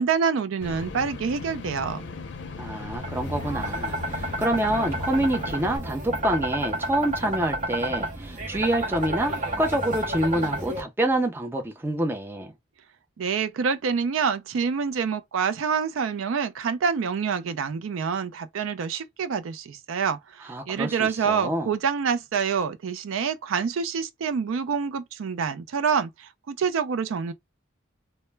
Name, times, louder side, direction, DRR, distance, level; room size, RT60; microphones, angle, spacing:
voice 1, 0.0-2.1 13.2-27.3, right 6 dB, 90° right, 0.4 m, -27 dB
sound 1, 0.6-5.8, left 4 dB, 65° left, 0.5 m, -38 dB
voice 2, 2.6-12.5 20.5-21.7, right 1 dB, 10° right, 0.4 m, -27 dB
sound 2, 3.0-10.8, right 1 dB, 40° right, 0.7 m, -30 dB
2.1 x 2.0 x 3.1 m
head